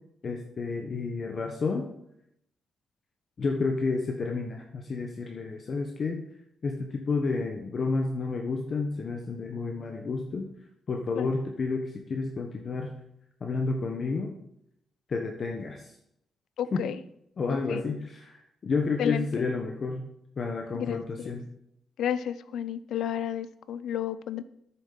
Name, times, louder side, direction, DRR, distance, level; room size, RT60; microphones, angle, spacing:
voice 1, 0.2-1.9 3.4-6.2 6.6-10.5 10.9-12.9 13.4-14.3 15.1-15.8 16.7-16.8 17.4-20.1 20.4-21.5, left 4 dB, 35° left, 3 dB, 0.8 m, -30 dB
voice 2, 16.6-16.9 17.5-17.8 19.0-19.5 20.7-21.4 22.0-24.4, left 9 dB, 75° left, 16 dB, 0.5 m, -32 dB
13.0 x 6.8 x 3.8 m, 0.77 s
wide cardioid pair, 180°, 0 cm